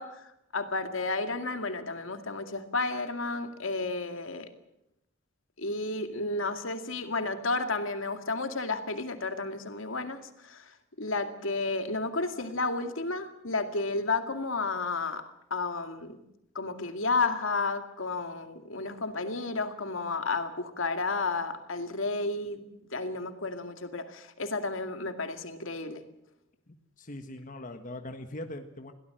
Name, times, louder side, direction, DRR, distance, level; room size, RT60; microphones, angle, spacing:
voice 1, 0.0-4.5 5.6-15.2 15.5-16.2 16.5-22.6 22.9-26.0, left 3 dB, 70° left, 7 dB, 2.2 m, -32 dB
voice 2, 26.7-28.9, left 1 dB, 40° left, 6 dB, 1.5 m, -41 dB
23.0 x 17.0 x 7.8 m, 0.83 s
head